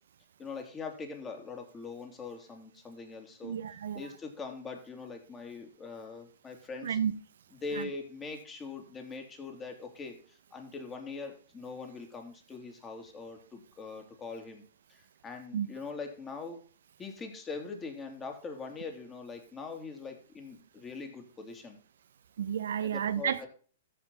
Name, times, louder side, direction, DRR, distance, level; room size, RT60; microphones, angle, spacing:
voice 1, 0.4-3.6 3.9-7.0 7.6-14.6 14.9-16.6 17.0-21.8 22.8-23.5, left 4 dB, 20° left, 2.9 m, -42 dB
voice 2, 3.4-4.0 6.8-7.1 7.7-7.9 15.5-15.7 22.4-23.5, right 9 dB, 75° right, 0.9 m, -31 dB
14.0 x 5.5 x 4.2 m
hypercardioid pair, 120°, 0 cm